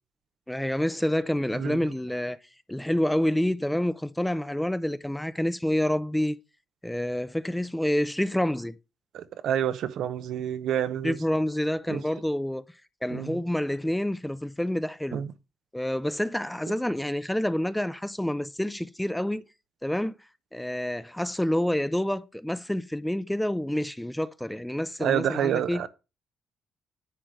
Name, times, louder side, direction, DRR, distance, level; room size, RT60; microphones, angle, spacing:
voice 1, 0.5-2.4 2.7-6.3 6.8-8.8 11.0-12.6 13.0-15.2 15.7-19.4 19.8-20.1 20.5-25.8, left 1 dB, 5° left, 0.5 m, -28 dB
voice 2, 9.1-11.2 11.9-12.0 13.1-13.4 15.1-15.3 25.0-25.9, right 10 dB, 75° right, 0.8 m, -28 dB
10.0 x 3.4 x 6.2 m
cardioid pair, 90°, 0 cm